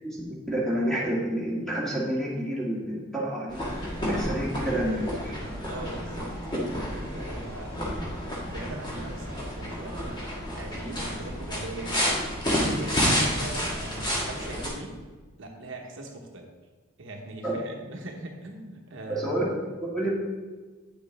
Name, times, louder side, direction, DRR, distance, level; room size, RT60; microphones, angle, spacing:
voice 1, 0.0-3.6 4.1-5.4 13.0-13.2 17.4-17.5 19.2-20.1, right 1 dB, ahead, -5 dB, 1.9 m, -29 dB
sound 1, 3.5-14.7, equal, 20° left, 1.8 m, -30 dB
voice 2, 5.7-8.2 8.5-12.2 12.7-15.0 15.4-16.5 17.0-19.5, right 2 dB, 65° right, 1 dB, 1.1 m, -41 dB
9.4 x 6.9 x 3.5 m, 1.3 s
head